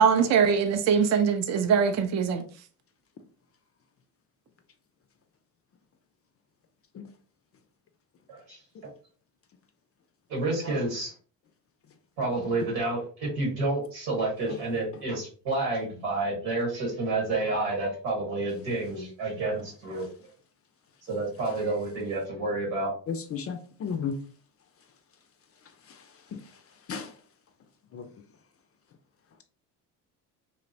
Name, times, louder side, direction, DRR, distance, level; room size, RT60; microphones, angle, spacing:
voice 1, 0.0-2.4, right 6 dB, 40° right, 0.4 m, -22 dB
voice 2, 8.3-8.6 10.3-11.1 12.2-20.1 21.1-22.9, right 2 dB, 90° right, 1.3 m, -29 dB
voice 3, 23.1-24.1 26.9-27.1 27.9-28.0, left 6 dB, 35° left, 0.4 m, -32 dB
2.8 x 2.0 x 2.6 m
hypercardioid pair, 60°, 45 cm